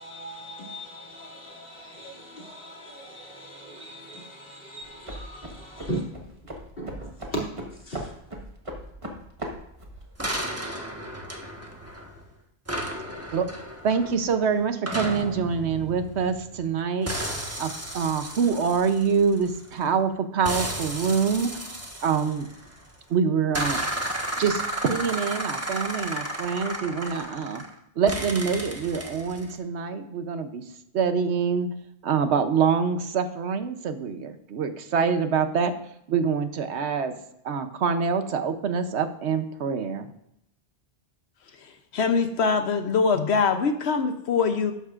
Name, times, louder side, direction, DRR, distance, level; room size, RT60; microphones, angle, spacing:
voice 1, 0.0-6.1 6.8-7.4 7.7-8.1, right 1 dB, 60° left, 2.8 m, -38 dB
sound 1, 4.8-10.4, right 1 dB, 30° right, 1.4 m, -39 dB
sound 2, 10.2-12.2 12.7-16.7 17.1-19.8 20.4-22.9 23.5-27.7 28.1-29.5, right 1 dB, 15° right, 1.2 m, -33 dB
voice 2, 13.8-17.3 17.6-21.5 22.0-22.5 23.1-23.8 24.4-27.6 28.0-30.6 30.9-31.7 32.0-35.7 36.1-37.1 37.4-40.1, right 6 dB, 80° right, 1.1 m, -25 dB
voice 3, 41.9-44.7, left 5 dB, 80° left, 1.0 m, -23 dB
12.0 x 9.3 x 2.5 m
omnidirectional pair, 1.1 m